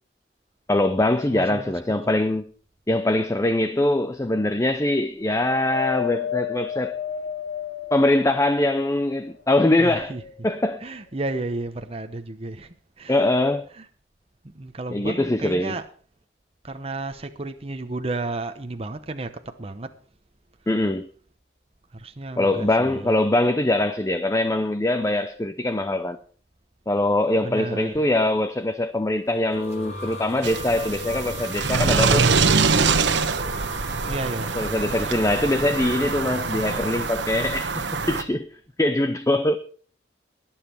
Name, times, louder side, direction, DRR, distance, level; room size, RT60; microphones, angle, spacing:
voice 1, 0.7-2.4 2.9-6.9 7.9-10.1 10.4-10.8 13.1-13.7 14.9-15.7 20.7-21.1 22.4-26.2 26.9-32.3 34.5-38.5 38.8-39.6, left 1 dB, 15° left, 0.6 m, -22 dB
voice 2, 1.3-1.7 9.8-10.2 10.8-13.3 13.8-13.9 14.4-15.9 16.6-19.9 21.9-23.1 27.4-27.9 34.1-34.6 34.9-35.2, right 2 dB, 35° right, 0.9 m, -33 dB
Wind, 5.3-8.8 9.4-10.4 11.2-11.3, left 8 dB, 75° left, 1.6 m, -32 dB
sound 1, 29.1-37.0, left 2 dB, 40° left, 3.4 m, -38 dB
sound 2, 30.4-38.2, right 4 dB, 85° right, 1.1 m, -24 dB
21.5 x 7.4 x 4.5 m
head